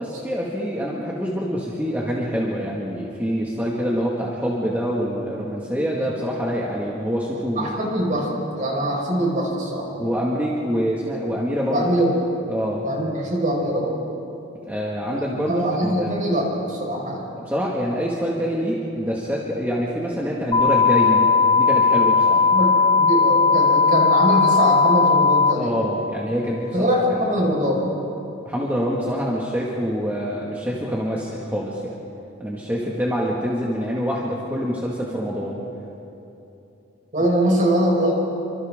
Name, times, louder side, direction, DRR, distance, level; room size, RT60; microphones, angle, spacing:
voice 1, 0.0-7.7 10.0-11.9 12.5-12.8 14.7-16.2 17.4-21.3 21.6-22.5 25.5-26.9 28.4-32.0 32.4-35.6, equal, 10° right, -5 dB, 2.0 m, -25 dB
voice 2, 7.6-8.3 8.6-9.9 11.7-12.1 12.8-14.0 15.5-17.2 22.5-25.7 26.7-27.9 37.1-38.1, equal, 40° right, -2 dB, 5.2 m, -22 dB
sound 1, 20.5-25.5, left 5 dB, 25° left, 1.5 m, -17 dB
29.0 x 25.5 x 3.8 m, 2.8 s
head